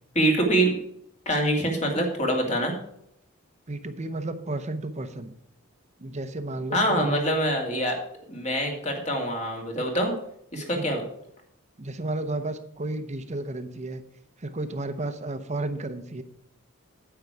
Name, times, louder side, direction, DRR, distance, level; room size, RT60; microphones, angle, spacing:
voice 1, 0.2-0.8 1.3-2.8 6.7-8.0 8.3-10.1 10.5-11.0, right 1 dB, 35° left, 2 dB, 2.2 m, -24 dB
voice 2, 3.7-5.3 6.0-7.2 10.7-10.9 11.8-14.0 14.4-16.2, right 2 dB, 35° right, 10 dB, 0.8 m, -32 dB
9.3 x 8.1 x 4.8 m, 0.73 s
head